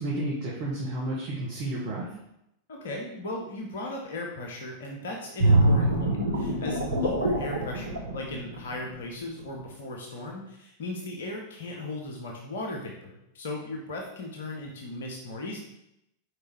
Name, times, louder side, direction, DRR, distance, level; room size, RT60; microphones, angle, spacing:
voice 1, 0.0-2.1, right 1 dB, 45° right, -5 dB, 1.4 m, -31 dB
voice 2, 2.7-15.6, left 2 dB, 60° left, 0 dB, 1.0 m, -37 dB
sound 1, 5.4-9.0 9.4-9.6, right 1 dB, 80° right, 1.0 m, -24 dB
5.0 x 4.7 x 4.5 m, 0.81 s
figure-of-eight pair, 90°, 0 cm